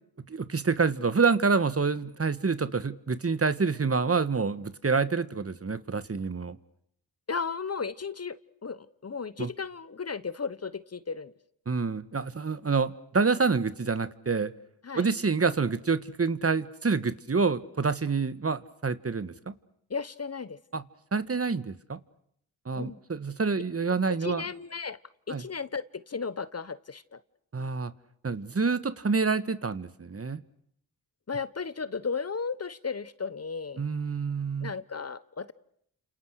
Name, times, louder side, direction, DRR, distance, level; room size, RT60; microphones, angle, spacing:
voice 1, 0.3-6.6 9.4-9.5 11.7-14.5 14.9-19.3 20.7-20.8 21.1-22.0 22.6-24.4 25.3-25.4 27.5-27.9 28.2-30.4 33.8-34.7, right 4 dB, 35° right, 14 dB, 1.6 m, -27 dB
voice 2, 7.3-11.3 14.8-15.1 19.9-20.6 22.7-23.0 24.1-25.0 25.3-27.2 31.3-33.9 34.6-35.5, left 5 dB, 40° left, 16 dB, 1.1 m, -35 dB
29.5 x 27.5 x 6.5 m, 0.71 s
cardioid pair, 55°, 39 cm